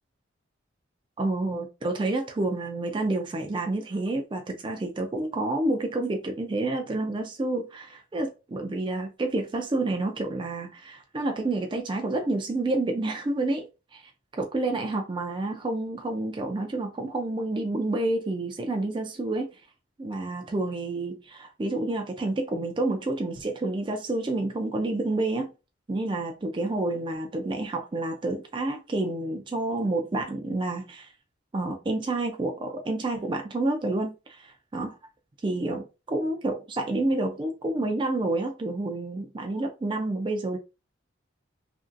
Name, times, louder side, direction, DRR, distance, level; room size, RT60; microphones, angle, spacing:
voice 1, 1.2-13.7 13.9-19.5 20.0-25.5 25.9-31.1 31.5-35.0 35.4-40.6, right 2 dB, 25° right, 0.3 m, -29 dB
2.9 x 2.6 x 2.4 m
head